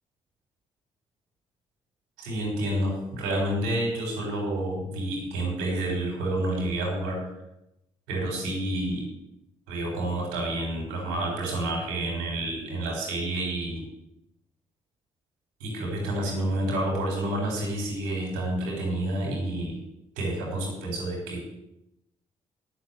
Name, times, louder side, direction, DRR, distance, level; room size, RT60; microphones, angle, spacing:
voice 1, 2.2-7.2 8.1-9.1 9.7-13.8 15.6-19.8 20.2-21.5, right 1 dB, 85° right, -1 dB, 4.3 m, -29 dB
8.8 x 7.3 x 8.2 m, 0.87 s
hypercardioid pair, 45°, 15 cm